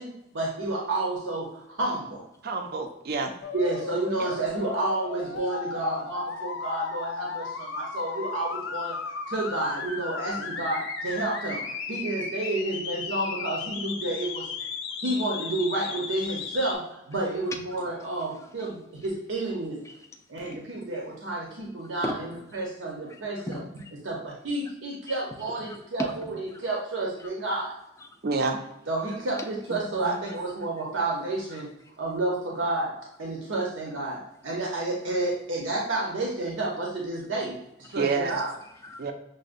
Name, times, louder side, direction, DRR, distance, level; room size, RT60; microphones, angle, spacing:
voice 1, 0.0-2.2 3.5-9.0 9.3-14.5 15.0-19.8 20.3-22.1 22.5-23.6 24.0-27.8 28.9-31.7 32.0-32.9 33.2-38.5, right 2 dB, 85° right, -2 dB, 0.7 m, -30 dB
voice 2, 2.4-3.3 4.2-4.3 10.4-10.5 28.2-28.6 38.0-38.4 39.0-39.1, right 4 dB, 55° right, 5 dB, 0.4 m, -28 dB
sound 1, 3.4-16.7, left 4 dB, 75° left, 0.5 m, -35 dB
voice 3, 18.3-18.7 19.0-19.1 19.8-20.1 20.5-20.6 20.9-21.0 22.0-22.7 23.1-23.9 25.1-25.2 25.6-26.1 26.5-26.6 27.2-27.6 28.0-28.2 29.7-30.3 31.5-31.7 37.8-38.0 38.5-39.1, left 1 dB, 15° left, 4 dB, 0.3 m, -40 dB
6.2 x 2.1 x 2.5 m, 0.83 s
head